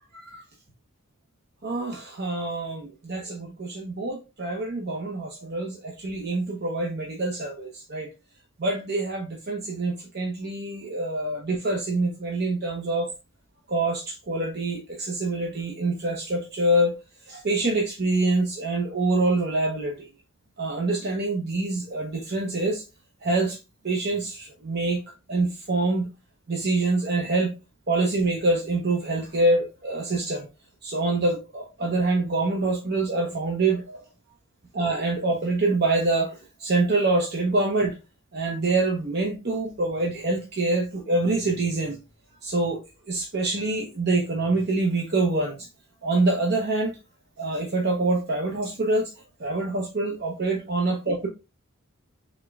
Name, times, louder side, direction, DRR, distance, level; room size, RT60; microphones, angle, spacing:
voice 1, 1.6-8.1 8.6-13.1 13.7-16.9 17.3-20.1 20.6-22.8 23.2-23.6 23.8-25.0 25.3-26.1 26.5-27.5 27.9-30.5 30.8-34.0 34.7-36.3 36.6-37.9 38.3-42.0 42.4-42.8 43.1-45.7 46.0-46.9 47.4-49.1 49.4-51.3, right 2 dB, 50° right, 0.8 m, -25 dB
5.1 x 3.6 x 2.3 m
head